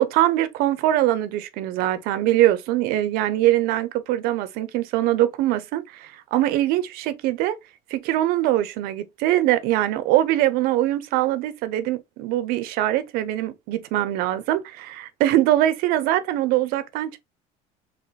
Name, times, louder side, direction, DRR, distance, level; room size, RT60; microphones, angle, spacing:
voice 1, 0.0-7.5 7.9-17.2, right 14 dB, 70° right, 0.6 m, -22 dB
4.0 x 2.9 x 3.2 m
cardioid pair, 135°, 16 cm